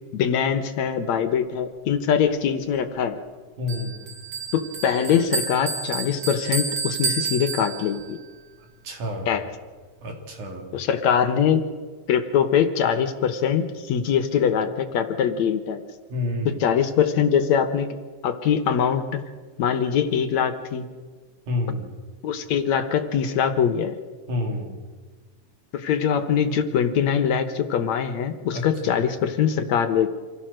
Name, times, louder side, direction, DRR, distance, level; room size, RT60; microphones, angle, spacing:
voice 1, 0.1-3.2 4.5-8.2 9.3-9.4 10.7-11.6 12.1-15.8 16.6-17.9 18.2-19.2 19.6-20.9 22.2-24.0 25.7-30.1, left 8 dB, 70° left, 9 dB, 2.4 m, -22 dB
voice 2, 3.6-4.1 8.8-9.4 10.0-10.8 16.1-16.6 21.5-22.0 24.3-24.8 28.5-29.0, left 2 dB, 75° right, 1 dB, 4.8 m, -29 dB
Bell, 3.7-8.2, right 5 dB, 50° right, 4.1 m, -30 dB
27.0 x 16.5 x 6.4 m, 1.5 s
omnidirectional pair, 3.5 m